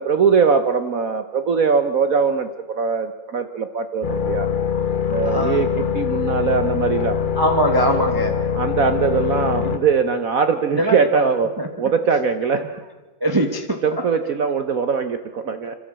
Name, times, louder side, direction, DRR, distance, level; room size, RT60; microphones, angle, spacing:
voice 1, 0.0-4.5 5.1-5.7 5.9-7.2 8.5-12.8 13.8-15.7, right 5 dB, 55° right, 9 dB, 1.1 m, -21 dB
sound 1, 4.0-9.8, left 7 dB, 35° left, 0.8 m, -23 dB
voice 2, 5.2-5.6 7.3-8.4 9.6-9.7 10.8-11.1 11.6-11.7 13.2-13.8, equal, 15° right, 3 dB, 1.2 m, -21 dB
26.5 x 13.5 x 7.5 m, 1.3 s
omnidirectional pair, 2.2 m